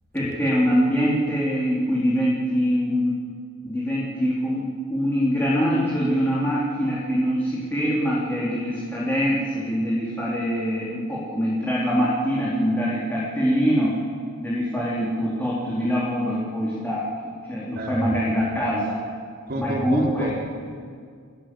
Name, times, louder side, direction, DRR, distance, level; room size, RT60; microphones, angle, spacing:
voice 1, 0.1-3.1 3.6-14.0 14.4-17.1 17.5-19.0 19.6-20.3, equal, 10° left, -7 dB, 3.9 m, -24 dB
voice 2, 17.7-18.1 19.5-20.3, right 1 dB, 45° right, 0 dB, 4.0 m, -28 dB
30.0 x 16.5 x 7.8 m, 2.1 s
head